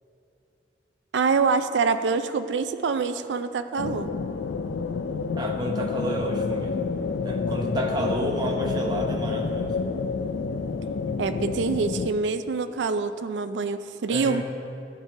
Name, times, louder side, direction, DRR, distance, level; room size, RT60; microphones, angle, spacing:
voice 1, 1.1-4.1 11.2-14.4, right 4 dB, 90° right, 10 dB, 0.4 m, -25 dB
sound 1, 3.8-12.1, left 5 dB, 80° left, 0.4 m, -29 dB
voice 2, 5.4-6.9 7.2-9.7 14.1-14.4, right 1 dB, 25° right, 0 dB, 0.9 m, -30 dB
12.0 x 8.9 x 3.2 m, 2.7 s
head